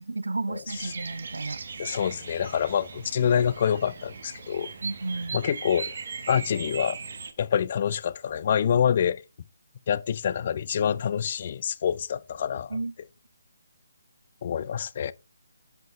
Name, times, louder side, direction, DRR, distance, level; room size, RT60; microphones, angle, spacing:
voice 1, 0.0-1.6 4.8-5.4 12.7-12.9, right 3 dB, 70° right, 0.3 m, -32 dB
Bird vocalization bird call bird song, 0.7-7.3, right 5 dB, 50° right, 1.1 m, -38 dB
voice 2, 1.8-4.7 5.3-5.9 6.3-7.0 7.4-9.2 9.9-12.8 14.4-15.1, left 8 dB, 40° left, 0.5 m, -26 dB
10.5 x 5.4 x 3.2 m
figure-of-eight pair, 145°, 0 cm